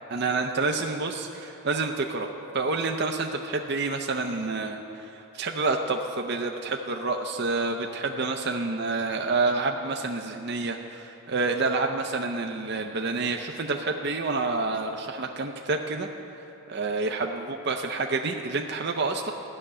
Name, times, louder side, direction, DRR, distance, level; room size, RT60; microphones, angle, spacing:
voice 1, 0.1-2.3 2.5-16.1 16.7-19.3, right 3 dB, 50° right, 3 dB, 0.6 m, -28 dB
14.0 x 6.7 x 9.8 m, 3.0 s
head